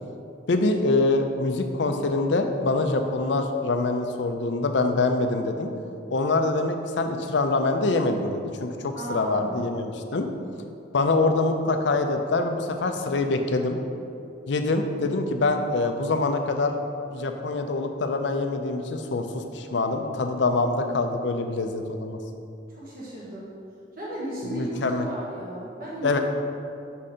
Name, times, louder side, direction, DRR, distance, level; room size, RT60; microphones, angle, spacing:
voice 1, 0.5-5.7 6.1-10.3 10.9-13.8 14.5-16.7 17.1-22.2 24.4-25.1 26.0-26.2, left 3 dB, 65° left, 5 dB, 0.5 m, -25 dB
voice 2, 8.9-9.6 22.7-23.5 23.9-26.1, right 1 dB, 50° right, -7 dB, 1.4 m, -34 dB
6.3 x 4.3 x 4.9 m, 2.5 s
head